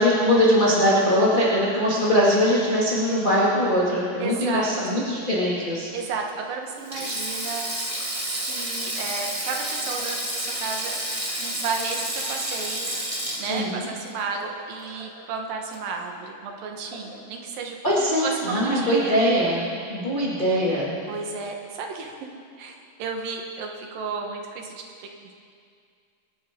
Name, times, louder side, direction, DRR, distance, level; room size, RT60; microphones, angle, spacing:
voice 1, 0.0-5.9 13.5-13.8 17.8-19.6 19.9-21.0, equal, 25° left, -7 dB, 1.2 m, -21 dB
voice 2, 4.2-5.0 5.9-7.7 8.2-11.0 11.4-13.0 13.4-17.8 18.2-19.2 21.1-22.2 22.6-25.3, right 4 dB, 65° right, 2 dB, 2.7 m, -33 dB
Sink (filling or washing), 6.8-15.2 15.5-15.7 16.9-17.2, right 1 dB, 25° right, 0.7 m, -30 dB
25.5 x 11.5 x 3.8 m, 2.3 s
omnidirectional pair, 4.9 m